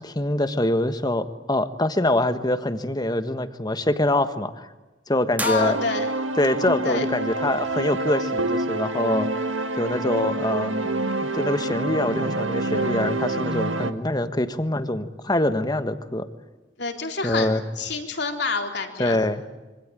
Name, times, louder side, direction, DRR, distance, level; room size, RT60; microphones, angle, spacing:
voice 1, 0.0-4.7 5.1-5.8 6.4-9.3 9.8-10.9 11.2-16.3 17.2-17.6 19.0-19.4, left 1 dB, 20° left, 10 dB, 1.4 m, -24 dB
sound 1, 5.3-6.4, right 2 dB, 10° right, 1.6 m, -34 dB
voice 2, 5.4-6.1 6.8-7.1 16.8-19.2, left 4 dB, 60° left, 4 dB, 3.9 m, -27 dB
sound 2, 5.6-13.9, right 2 dB, 85° right, 1.8 m, -27 dB
26.0 x 25.0 x 9.0 m, 1.1 s
head